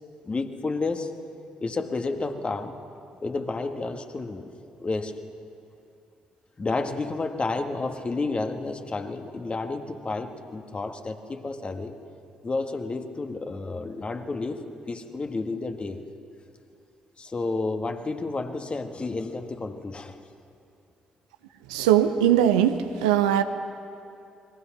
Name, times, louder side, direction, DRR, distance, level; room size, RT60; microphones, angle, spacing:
voice 1, 0.2-1.1 1.6-2.7 3.2-4.5 4.8-5.1 6.6-11.9 12.4-16.0 17.2-20.2, left 3 dB, 30° left, 6 dB, 1.9 m, -31 dB
voice 2, 21.7-23.4, right 10 dB, 75° right, 9 dB, 0.9 m, -20 dB
29.0 x 22.0 x 6.1 m, 2.6 s
figure-of-eight pair, 45°, 4 cm